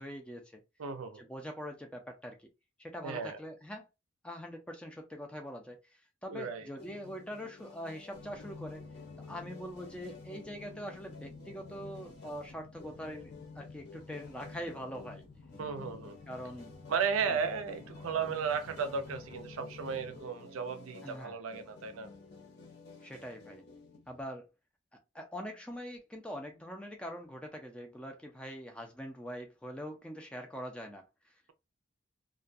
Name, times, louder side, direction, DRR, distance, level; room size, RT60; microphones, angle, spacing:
voice 1, 0.0-0.6 1.2-2.5 2.8-3.9 4.2-5.8 6.2-8.8 9.3-15.2 16.3-16.7 17.3-17.4 21.0-21.4 23.0-23.6 24.1-24.5 25.1-31.3, equal, 5° left, 0.4 m, -43 dB
voice 2, 0.8-1.2 3.0-3.4 6.3-6.7 15.6-16.2 16.9-22.1, right 6 dB, 85° right, 0.4 m, -35 dB
sound 1, 6.8-24.2, left 3 dB, 50° left, 0.8 m, -53 dB
sound 2, 8.1-20.2, left 4 dB, 90° left, 0.5 m, -51 dB
2.3 x 2.2 x 2.5 m
head